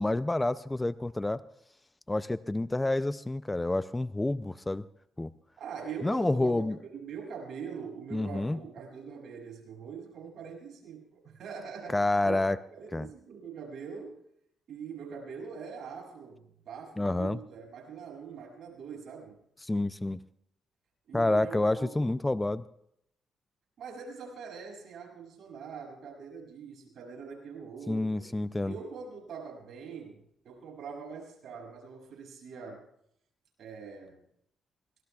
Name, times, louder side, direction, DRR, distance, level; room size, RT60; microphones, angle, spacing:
voice 1, 0.0-1.4 2.1-4.8 5.2-5.3 6.0-6.8 8.1-8.6 11.9-12.6 12.9-13.1 17.0-17.4 19.6-20.2 21.1-22.6 27.9-28.7, left 2 dB, 15° left, 14 dB, 0.5 m, -28 dB
voice 2, 5.6-14.2 14.7-19.4 21.1-22.1 23.8-28.3 28.6-32.8 33.6-34.2, right 6 dB, 65° right, -1 dB, 7.6 m, -43 dB
25.0 x 19.0 x 2.4 m, 0.73 s
cardioid pair, 90°, 0 cm